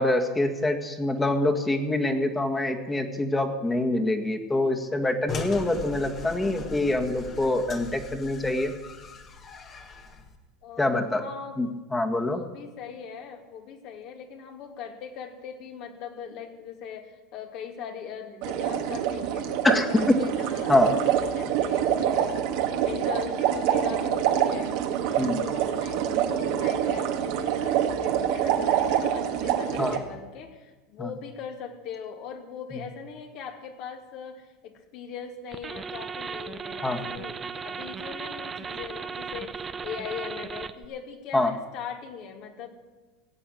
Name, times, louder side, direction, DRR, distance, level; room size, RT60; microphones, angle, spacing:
voice 1, 0.0-8.7 10.8-11.2 11.6-12.4 19.6-20.2 20.7-20.9 25.2-25.4 29.8-30.0 31.0-31.1 36.8-37.0 41.3-41.5, left 2 dB, 15° left, 4 dB, 1.8 m, -25 dB
sound 1, 5.3-10.4, left 3 dB, 40° left, 1.9 m, -39 dB
voice 2, 10.6-11.7 12.1-22.5 22.8-42.8, left 7 dB, 60° left, 3 dB, 2.6 m, -40 dB
sound 2, 18.4-30.0, right 9 dB, 65° right, 1.5 m, -26 dB
sound 3, 35.5-40.9, right 6 dB, 25° right, 0.8 m, -36 dB
17.0 x 7.9 x 7.7 m, 1.2 s
hypercardioid pair, 95°, 0 cm